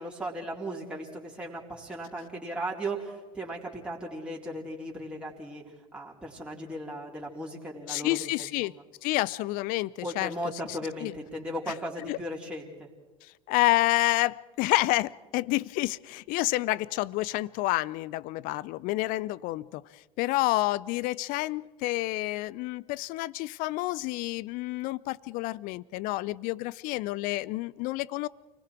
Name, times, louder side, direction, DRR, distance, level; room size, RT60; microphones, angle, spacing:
voice 1, 0.0-5.6 5.9-8.8 10.0-12.9, right 1 dB, 5° right, -3 dB, 3.9 m, -37 dB
voice 2, 7.9-8.7 9.0-10.3 11.0-11.1 12.0-12.2 13.5-28.3, left 19 dB, 50° left, 22 dB, 0.6 m, -29 dB
29.0 x 19.5 x 4.6 m, 1.2 s
figure-of-eight pair, 75°, 19 cm